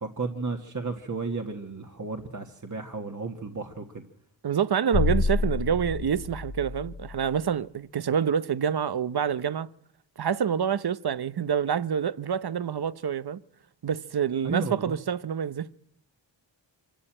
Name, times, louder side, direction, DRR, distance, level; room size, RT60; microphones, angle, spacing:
voice 1, 0.0-4.0 14.4-15.0, right 3 dB, 40° right, 1.7 m, -33 dB
voice 2, 4.4-9.7 10.2-13.4 13.8-15.7, right 8 dB, 55° right, 0.8 m, -27 dB
sound 1, 4.9-7.4, left 4 dB, 45° left, 0.9 m, -28 dB
25.0 x 12.5 x 8.9 m
wide cardioid pair, 60°, 45 cm